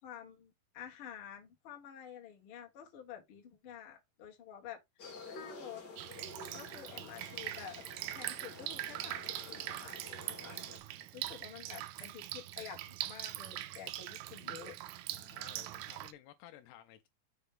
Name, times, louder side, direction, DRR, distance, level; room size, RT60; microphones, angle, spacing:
voice 1, 0.0-5.8 6.5-7.8 8.1-14.8, left 9 dB, 45° left, 1.8 m, -50 dB
sound 1, 5.0-10.8, left 3 dB, 30° left, 2.5 m, -51 dB
Drip, 6.0-16.1, right 15 dB, 80° right, 2.3 m, -42 dB
voice 2, 10.5-11.1 15.1-17.1, left 12 dB, 80° left, 2.6 m, -56 dB
6.9 x 5.2 x 3.8 m
omnidirectional pair, 5.0 m